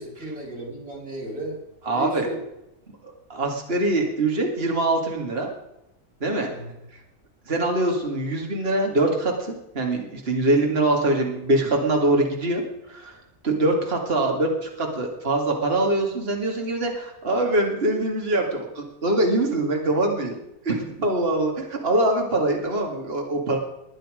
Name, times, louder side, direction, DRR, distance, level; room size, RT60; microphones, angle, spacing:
voice 1, 0.0-1.6 1.9-2.4 6.5-6.7, right 1 dB, 75° right, -3 dB, 6.8 m, -34 dB
voice 2, 1.8-2.3 3.3-5.5 6.2-6.5 7.5-12.6 12.9-13.1 13.4-20.4 20.6-23.6, right 2 dB, 40° right, 1 dB, 2.6 m, -23 dB
21.5 x 9.0 x 5.1 m, 0.88 s
omnidirectional pair, 1.6 m